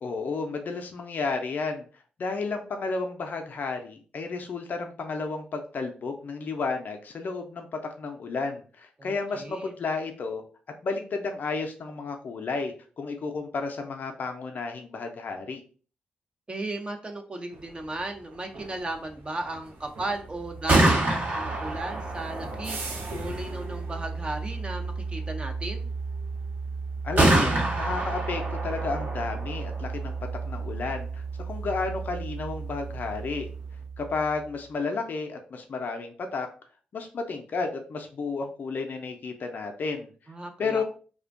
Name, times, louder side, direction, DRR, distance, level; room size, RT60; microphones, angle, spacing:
voice 1, 0.0-1.8 2.2-7.7 8.0-10.4 10.8-15.6 27.0-30.1 30.5-33.5 34.0-36.5 36.9-40.1 40.6-40.8, left 4 dB, 55° left, 4 dB, 0.4 m, -32 dB
voice 2, 9.0-9.7 16.5-21.0 21.3-22.8 23.1-25.9 40.3-40.8, right 2 dB, 30° right, 3 dB, 0.5 m, -35 dB
sound 1, 17.5-33.9, right 2 dB, 70° right, 0.6 m, -46 dB
Gunshot gunfire, 20.4-34.3, right 2 dB, 55° right, 0.9 m, -29 dB
2.4 x 2.1 x 2.4 m, 0.39 s
supercardioid pair, 45°, 4 cm